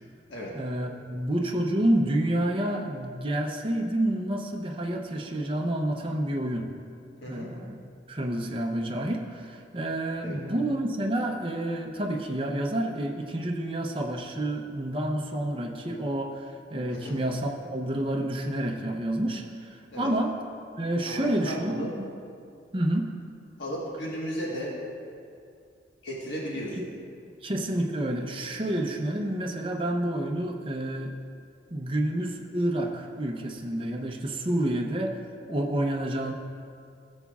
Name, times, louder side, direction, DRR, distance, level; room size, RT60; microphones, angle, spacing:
voice 1, 0.5-6.6 7.3-7.8 8.1-20.4 20.8-22.0 22.7-23.1 26.8-26.9 27.4-31.1 31.7-35.2 35.5-36.3, right 1 dB, 30° right, 2 dB, 0.7 m, -29 dB
voice 2, 7.2-7.5 10.2-10.4 16.9-17.2 19.9-20.1 21.0-21.9 23.6-24.8 26.0-26.8 34.6-34.7, equal, 70° left, -5 dB, 1.5 m, -35 dB
16.0 x 7.1 x 2.4 m, 2.4 s
head